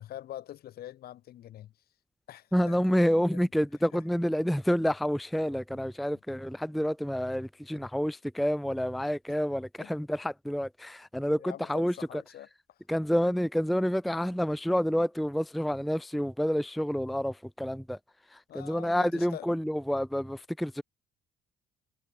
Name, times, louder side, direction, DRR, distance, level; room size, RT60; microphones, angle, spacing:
voice 1, 0.0-1.7 2.3-2.8 3.3-3.4 3.9-4.0 5.7-5.8 7.7-7.8 9.8-9.9 11.4-12.8 18.5-19.6, left 12 dB, 65° left, 5.0 m, -45 dB
voice 2, 2.5-12.2 12.9-18.0 18.3-20.8, equal, ahead, 0.5 m, -28 dB
cardioid pair, 110°, 17 cm